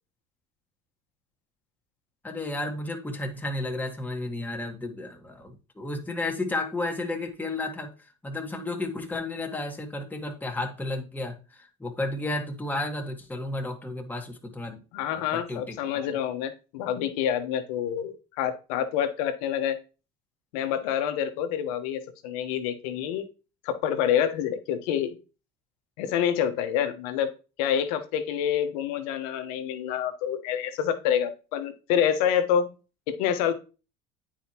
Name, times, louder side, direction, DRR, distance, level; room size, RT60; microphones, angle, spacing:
voice 1, 2.2-7.9 8.2-14.8 15.1-15.8, left 2 dB, 10° left, 2 dB, 1.4 m, -32 dB
voice 2, 14.9-19.8 20.5-23.3 23.6-25.2 26.0-27.3 27.6-32.7 33.1-33.5, left 9 dB, 75° left, 9 dB, 1.0 m, -27 dB
9.0 x 4.7 x 2.9 m, 0.33 s
supercardioid pair, 85°, 19 cm